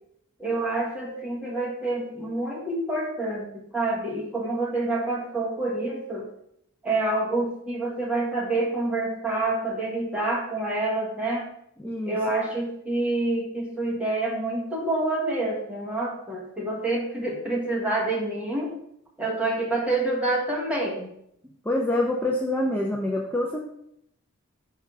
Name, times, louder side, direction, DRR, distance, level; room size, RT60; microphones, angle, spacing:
voice 1, 0.4-6.2 6.8-11.5 12.0-18.7 19.2-21.1, right 2 dB, 5° right, -4 dB, 1.5 m, -27 dB
voice 2, 11.8-12.2 21.6-23.6, left 1 dB, 10° left, -1 dB, 0.5 m, -26 dB
5.3 x 3.6 x 5.4 m, 0.75 s
head